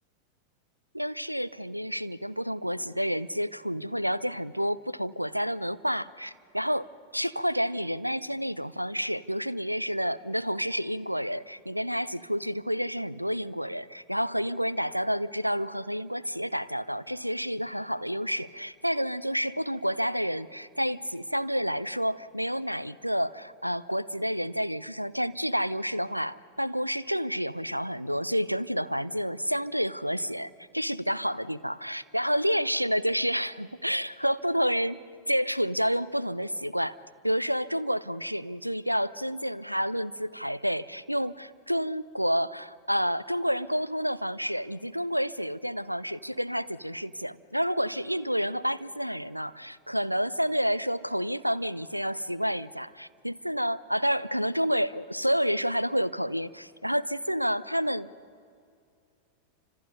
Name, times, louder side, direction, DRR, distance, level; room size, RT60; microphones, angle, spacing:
voice 1, 0.9-6.9 7.1-35.0 35.3-37.0 37.2-58.1, equal, 90° right, 18 dB, 0.6 m, -29 dB
29.0 x 26.0 x 5.3 m, 2.4 s
figure-of-eight pair, 90°, 0 cm